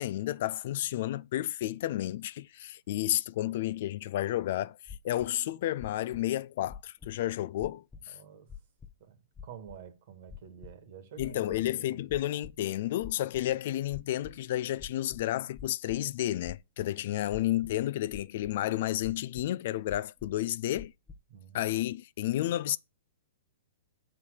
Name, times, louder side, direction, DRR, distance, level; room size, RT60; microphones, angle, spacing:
voice 1, 0.0-4.8 5.0-8.2 11.2-20.9 21.5-22.8, left 14 dB, 55° left, 0.4 m, -31 dB
sound 1, 4.9-5.3 5.8-6.2 6.7-7.2 7.6-8.0 8.5-8.9 9.4-9.8 10.3-10.7 11.2-11.7 12.1-12.6 13.0-13.5 13.9-14.3 14.8-16.0 16.4-16.9 17.3-17.8 18.1-18.6 19.0-19.5 19.9-20.4 20.8-21.2, left 7 dB, 15° left, 0.7 m, -46 dB
voice 2, 8.1-8.5 9.0-12.3 21.3-21.7, right 8 dB, 55° right, 1.6 m, -49 dB
6.9 x 4.4 x 6.4 m
hypercardioid pair, 120°, 0 cm